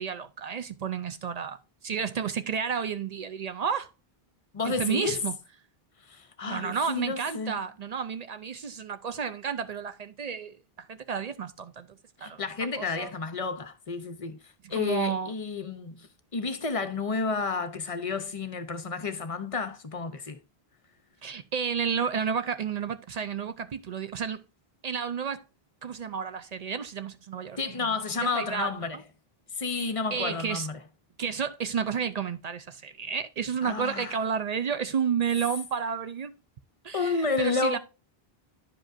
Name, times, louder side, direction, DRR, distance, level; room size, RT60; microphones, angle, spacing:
voice 1, 0.0-3.9 4.6-5.4 6.5-12.4 12.8-13.1 14.6-15.3 21.2-24.4 24.8-25.4 25.8-29.0 30.1-30.7 31.2-36.4 36.8-37.8, right 7 dB, 55° right, 0.5 m, -31 dB
voice 2, 4.5-5.2 6.1-7.6 12.2-14.4 14.7-16.1 16.3-20.4 27.6-29.0 29.6-30.8 33.6-34.2 36.9-37.8, left 4 dB, 40° left, 0.6 m, -31 dB
10.5 x 5.1 x 2.5 m
omnidirectional pair, 1.0 m